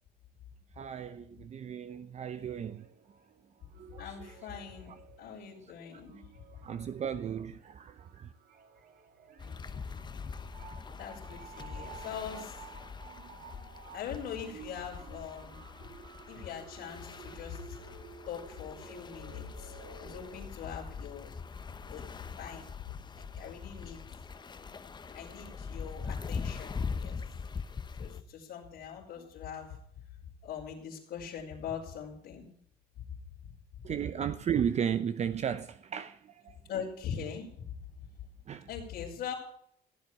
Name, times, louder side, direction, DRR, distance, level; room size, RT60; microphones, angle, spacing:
voice 1, 0.8-2.8 3.9-4.1 6.6-8.3 33.8-36.6 38.5-38.7, right 8 dB, 40° right, 0.7 m, -34 dB
sound 1, 2.2-20.4, right 7 dB, 60° right, 2.5 m, -53 dB
voice 2, 4.0-4.9 5.2-6.3 11.0-12.6 13.9-15.6 16.3-17.8 18.3-21.3 21.9-22.1 22.4-22.7 23.2-24.0 25.1-27.2 28.0-29.8 30.4-32.5 36.7-37.5 38.7-39.3, left 7 dB, 80° left, 4.2 m, -42 dB
sound 2, 9.4-28.2, left 5 dB, 25° left, 1.0 m, -42 dB
16.0 x 7.7 x 8.3 m
cardioid pair, 110°, 17 cm